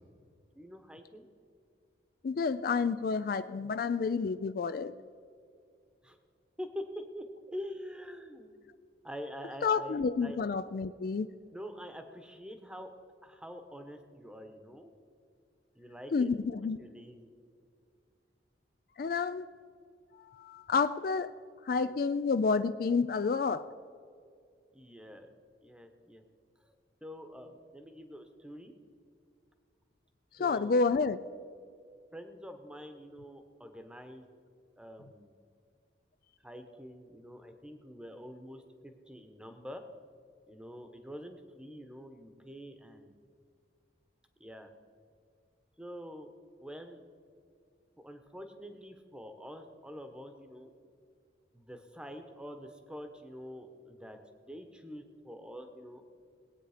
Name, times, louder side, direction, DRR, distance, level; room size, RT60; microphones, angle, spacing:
voice 1, 0.5-1.2 6.0-6.2 6.6-6.8 7.1-8.6 9.0-10.4 11.5-12.9 13.2-14.9 15.7-16.3 16.8-17.3 24.7-25.3 25.6-26.2 26.6-26.7 27.0-28.7 30.4-30.8 32.1-34.3 34.8-35.4 36.4-39.8 40.5-43.2 44.4-44.7 45.8-46.3 46.6-47.0 48.0-50.7 51.5-54.2 54.4-56.0, equal, 5° right, 6 dB, 1.0 m, -46 dB
voice 2, 2.2-4.9 9.6-11.3 16.1-16.8 19.0-19.5 20.2-21.3 21.7-23.7 30.4-31.2, left 4 dB, 50° left, 12 dB, 0.3 m, -29 dB
20.5 x 8.7 x 5.0 m, 2.3 s
head